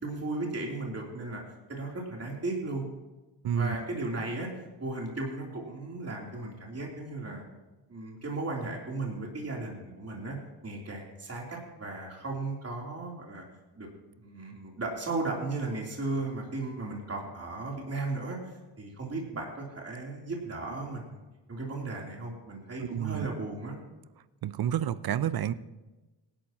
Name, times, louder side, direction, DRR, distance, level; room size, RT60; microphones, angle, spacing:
voice 1, 0.0-1.4 1.7-2.8 3.5-4.5 4.8-7.4 7.9-10.4 10.6-13.4 13.8-18.4 18.8-21.2 21.5-23.8, right 2 dB, 30° right, -2 dB, 3.4 m, -35 dB
voice 2, 3.4-3.8 22.8-23.3 24.4-25.5, right 10 dB, 50° right, 16 dB, 0.7 m, -30 dB
18.5 x 11.5 x 3.0 m, 1.1 s
cardioid pair, 70°, 46 cm